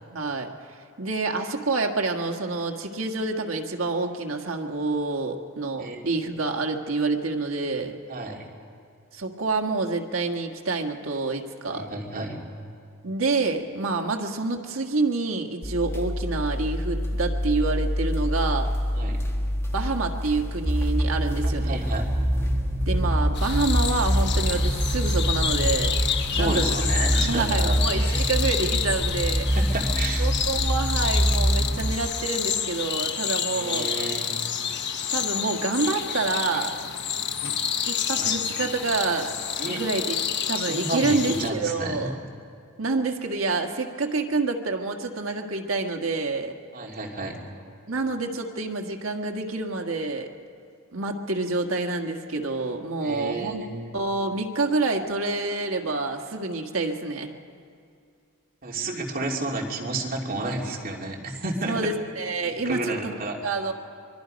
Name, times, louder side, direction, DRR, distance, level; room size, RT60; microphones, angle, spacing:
voice 1, 0.1-0.5 1.0-8.0 9.1-11.9 13.0-18.7 19.7-21.8 22.9-25.9 26.3-26.6 27.1-29.5 30.2-33.9 35.1-36.7 37.9-39.3 39.6-40.2 40.5-42.1 42.8-46.6 47.9-50.3 50.9-53.6 53.9-57.3 61.6-63.1 63.4-63.7, right 3 dB, 70° right, 3 dB, 1.6 m, -27 dB
voice 2, 8.1-8.4 11.7-12.4 18.9-19.2 21.6-22.1 26.3-28.2 29.5-30.3 33.5-34.3 38.1-38.3 39.6-39.8 40.7-42.1 46.7-47.4 53.0-53.7 58.6-61.8 62.4-63.4, right 2 dB, 45° right, -1 dB, 2.8 m, -31 dB
sound 1, 15.6-27.2, equal, 15° left, 1.6 m, -30 dB
sound 2, 20.6-31.9, equal, 10° right, 1.0 m, -25 dB
sound 3, 23.4-41.5, left 8 dB, 55° left, 1.1 m, -29 dB
24.0 x 23.0 x 5.2 m, 2.3 s
head